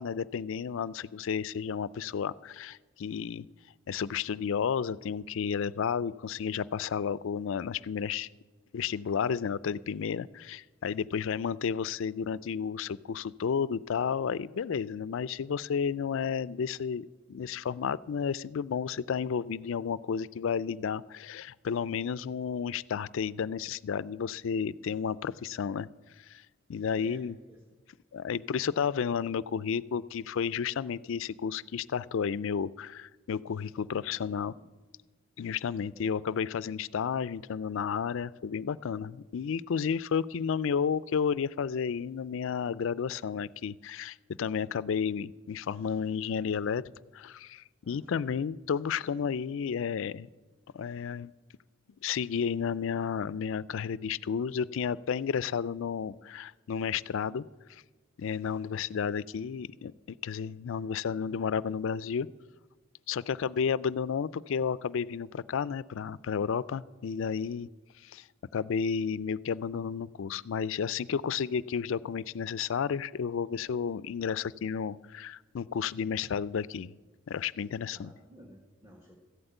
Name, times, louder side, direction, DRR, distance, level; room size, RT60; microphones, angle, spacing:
voice 1, 0.0-3.4 3.9-8.3 8.7-25.9 26.3-26.4 26.7-27.4 28.1-34.5 35.4-46.8 47.1-50.3 50.7-51.3 52.0-57.4 57.7-57.8 58.2-62.3 63.1-67.7 68.0-68.2 68.5-76.9 77.3-78.1, left 6 dB, 70° left, 20 dB, 0.4 m, -32 dB
voice 2, 26.9-27.6 33.8-34.0 34.4-34.7 35.9-36.1 47.8-48.4 77.9-79.2, equal, 15° right, 1 dB, 1.5 m, -54 dB
14.5 x 8.0 x 9.0 m, 1.2 s
head